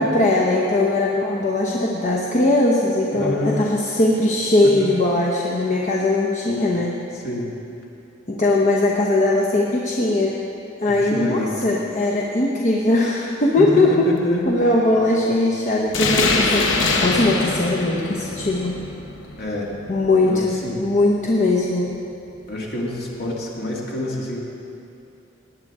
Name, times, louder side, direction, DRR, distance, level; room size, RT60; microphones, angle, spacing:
voice 1, 0.0-6.9 8.3-10.4 10.8-14.1 14.4-18.8 19.9-22.0, left 2 dB, 40° left, -2 dB, 0.8 m, -20 dB
voice 2, 3.1-3.7 4.6-4.9 7.2-7.5 10.9-11.5 13.6-14.5 19.4-19.7 20.2-20.8 22.5-24.4, left 1 dB, 55° left, -3 dB, 2.0 m, -27 dB
sound 1, 15.9-21.0, left 3 dB, 70° left, 1.0 m, -24 dB
18.0 x 9.5 x 3.6 m, 2.7 s
head